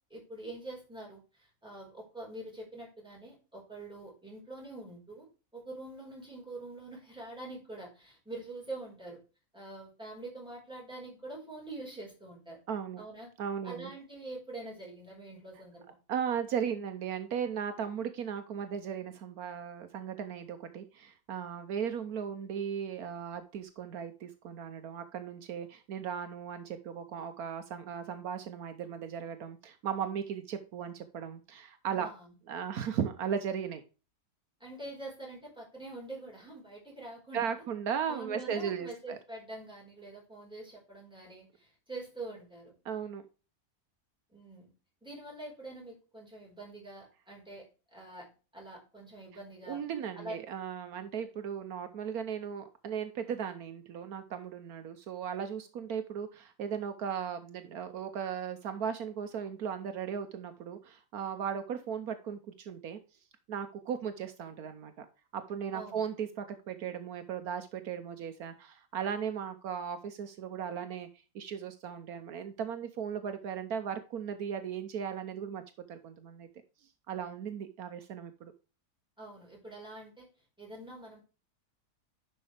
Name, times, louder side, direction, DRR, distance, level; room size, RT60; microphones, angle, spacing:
voice 1, 0.1-5.2 5.5-9.2 9.5-12.6 13.0-13.3 13.6-15.8 31.9-32.3 34.6-37.6 38.1-42.7 44.3-44.7 45.0-49.8 50.1-50.3 65.7-66.0 79.2-80.3 80.6-81.2, right 2 dB, 5° right, -3 dB, 4.9 m, -45 dB
voice 2, 12.7-13.0 13.4-13.9 16.1-32.1 32.5-33.8 37.3-39.2 42.8-43.2 49.7-63.0 63.5-65.1 65.3-71.1 71.3-75.6 75.9-76.5 77.1-78.5, right 8 dB, 75° right, 8 dB, 1.3 m, -37 dB
10.5 x 5.7 x 3.4 m, 0.33 s
omnidirectional pair, 1.6 m